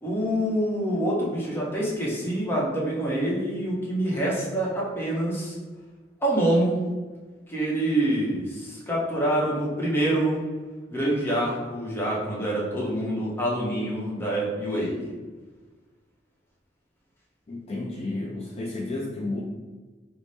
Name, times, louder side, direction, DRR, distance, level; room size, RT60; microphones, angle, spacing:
voice 1, 0.0-5.5 6.2-6.8 7.5-10.4 10.9-15.1, right 1 dB, 15° left, -5 dB, 0.8 m, -26 dB
voice 2, 17.5-19.4, left 2 dB, 35° left, -2 dB, 0.3 m, -32 dB
3.3 x 2.1 x 4.0 m, 1.3 s
head